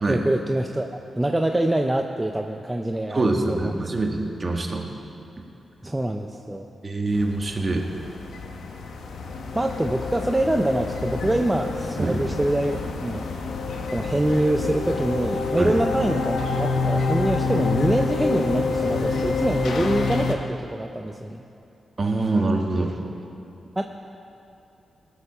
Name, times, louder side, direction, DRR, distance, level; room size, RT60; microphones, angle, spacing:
voice 1, 0.1-3.9 5.8-6.7 9.5-13.3 13.9-21.4 23.8-23.9, right 1 dB, 15° right, 4 dB, 0.5 m, -25 dB
voice 2, 3.1-4.9 5.4-5.5 6.8-7.9 12.0-12.2 15.6-15.7 22.0-23.0, right 2 dB, 35° right, 2 dB, 1.4 m, -24 dB
sound 1, 7.1-20.3, left 4 dB, 85° left, 1.0 m, -27 dB
18.0 x 6.8 x 5.6 m, 2.7 s
cardioid pair, 80°, 0 cm